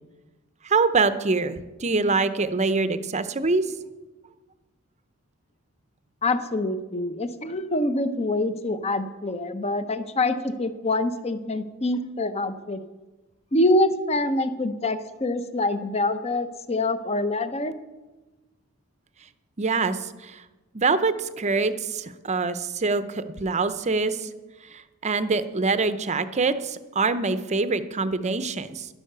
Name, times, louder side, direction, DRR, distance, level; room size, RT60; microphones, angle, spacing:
voice 1, 0.6-3.6 19.6-20.4 20.7-24.3 24.7-28.9, right 4 dB, 30° right, 12 dB, 0.7 m, -25 dB
voice 2, 6.2-12.8 13.5-17.7, left 2 dB, 30° left, 11 dB, 0.7 m, -25 dB
11.5 x 11.0 x 6.7 m, 1.2 s
head